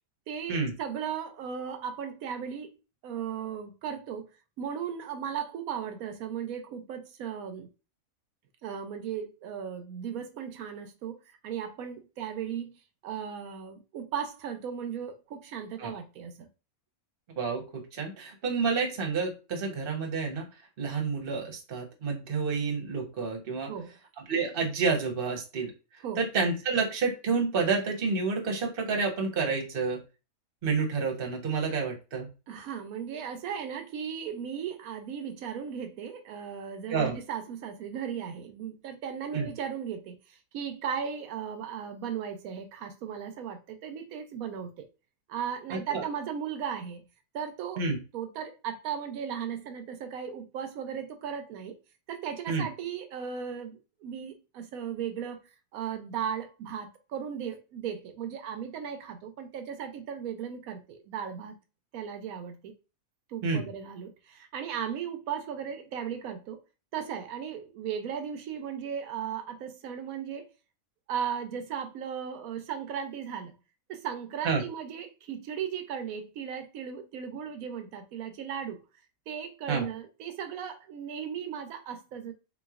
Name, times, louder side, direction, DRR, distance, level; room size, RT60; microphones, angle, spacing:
voice 1, 0.3-2.7 3.0-4.3 4.6-7.7 8.6-16.5 23.7-23.9 26.0-26.2 32.5-44.9 45.3-47.0 47.3-47.8 48.1-51.8 52.1-55.4 55.7-61.6 61.9-62.7 63.3-66.6 66.9-70.5 71.1-73.5 73.9-78.8 79.3-82.3, right 8 dB, 90° right, 1.1 m, -36 dB
voice 2, 17.4-20.5 20.8-23.7 24.3-25.7 26.2-30.0 30.6-32.3 36.9-37.1 39.3-39.5 45.7-46.0 47.8-48.0 52.5-52.7 63.4-63.6 74.4-74.6 79.7-79.9, right 4 dB, 45° right, 1.0 m, -29 dB
3.8 x 3.0 x 2.4 m
omnidirectional pair, 1.5 m